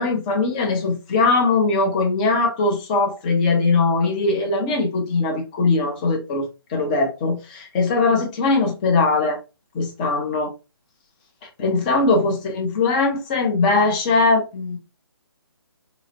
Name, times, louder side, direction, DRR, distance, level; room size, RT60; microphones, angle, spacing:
voice 1, 0.0-9.4 9.7-10.5 11.6-14.8, left 3 dB, 20° left, 0.6 m, -20 dB
3.7 x 2.1 x 2.7 m
figure-of-eight pair, 150°, 13 cm